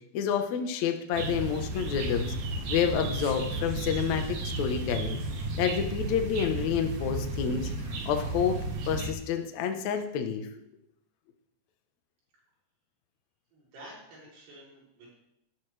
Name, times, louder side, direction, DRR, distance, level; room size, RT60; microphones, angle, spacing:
voice 1, 0.1-2.3 2.7-5.2 5.6-7.7 8.0-10.5, left 8 dB, 80° left, 5 dB, 1.6 m, -29 dB
sound 1, 1.1-9.1, right 2 dB, 55° right, 2.5 m, -33 dB
voice 2, 13.5-15.1, right 1 dB, 85° right, -5 dB, 9.1 m, -50 dB
18.5 x 13.5 x 3.4 m, 0.80 s
omnidirectional pair, 5.2 m